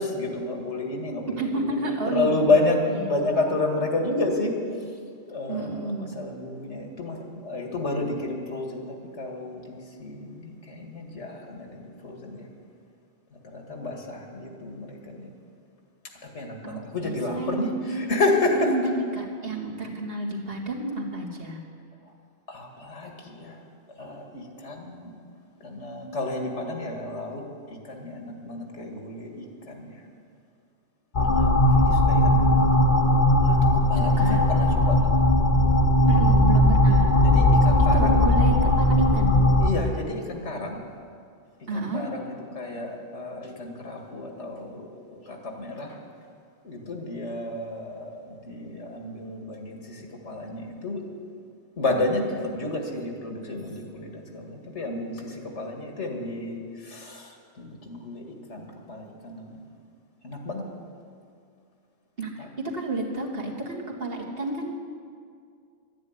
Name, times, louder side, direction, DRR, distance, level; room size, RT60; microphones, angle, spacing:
voice 1, 0.0-4.5 5.3-12.5 13.5-15.3 16.2-18.9 22.5-23.6 24.0-25.1 25.6-27.4 27.8-30.0 31.2-32.5 33.5-33.6 33.9-35.1 37.2-38.2 39.6-40.8 41.7-46.0 46.6-51.0 51.8-59.5 60.2-60.6 62.4-62.5, left 2 dB, 80° left, 2 dB, 2.2 m, -30 dB
voice 2, 1.3-2.3 2.9-3.3 5.5-6.2 16.6-17.9 18.6-21.6 34.0-34.4 36.0-37.2 37.8-39.4 41.7-42.1 62.2-62.3 62.6-64.8, right 2 dB, 55° right, -2 dB, 2.2 m, -30 dB
sound 1, 31.1-39.7, left 1 dB, 45° left, 1.0 m, -19 dB
12.0 x 10.0 x 9.6 m, 2.2 s
omnidirectional pair, 1.2 m